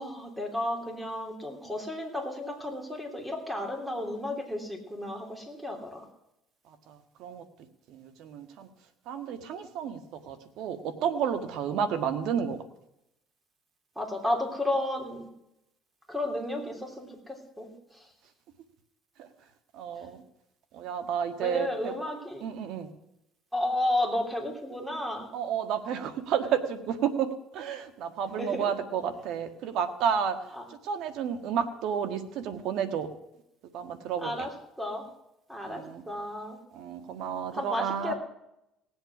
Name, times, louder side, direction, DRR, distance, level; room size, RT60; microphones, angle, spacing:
voice 1, 0.0-6.0 14.0-15.3 16.1-17.7 21.4-22.4 23.5-25.3 28.4-28.7 30.6-30.7 34.2-34.5 34.8-35.1 35.5-36.6 37.5-38.1, left 1 dB, 5° right, 3 dB, 3.3 m, -32 dB
voice 2, 6.7-7.4 7.9-8.7 9.0-12.6 19.2-19.3 19.7-20.2 20.7-21.9 22.4-22.9 25.3-27.3 27.5-30.4 30.7-33.1 33.7-34.5 35.6-36.0 36.7-38.1, right 8 dB, 70° right, 9 dB, 1.6 m, -31 dB
18.0 x 8.0 x 6.0 m, 0.85 s
cardioid pair, 100°, 0 cm